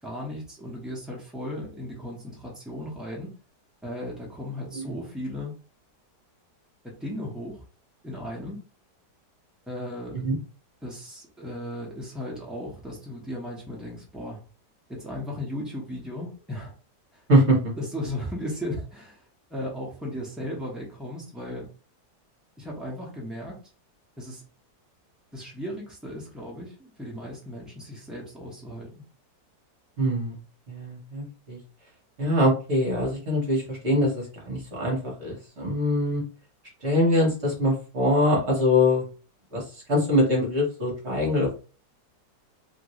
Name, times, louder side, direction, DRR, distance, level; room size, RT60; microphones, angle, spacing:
voice 1, 0.0-3.3 3.8-5.5 7.0-7.6 8.0-8.6 9.7-10.2 10.8-14.4 14.9-16.7 17.1-17.2 17.8-19.2 19.5-21.7 22.6-23.6 24.2-24.4 25.3-29.0, left 1 dB, ahead, -3 dB, 0.4 m, -36 dB
voice 2, 30.0-30.4 30.7-31.6 32.2-36.2 36.8-39.0 39.5-41.7, left 1 dB, 45° right, -2 dB, 1.2 m, -23 dB
2.9 x 2.6 x 3.0 m, 0.36 s
omnidirectional pair, 1.8 m